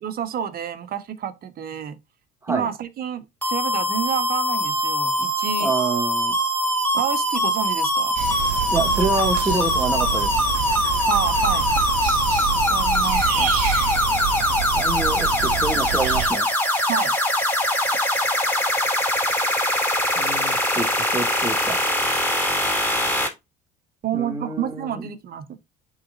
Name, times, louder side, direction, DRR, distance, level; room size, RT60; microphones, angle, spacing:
voice 1, 0.0-1.9 2.5-5.7 6.9-8.1 11.1-11.7 12.5-13.5 16.9-17.1 24.0-25.6, right 8 dB, 55° right, 1.4 m, -29 dB
sound 1, 3.4-23.3, left 1 dB, 10° left, 3.7 m, -22 dB
voice 2, 5.6-6.4 8.7-10.3 14.8-16.5 20.2-21.8 24.1-25.1, right 3 dB, 15° right, 2.4 m, -27 dB
sound 2, 8.2-16.3, right 12 dB, 90° right, 0.7 m, -28 dB
11.0 x 4.2 x 2.6 m
supercardioid pair, 75°, 18 cm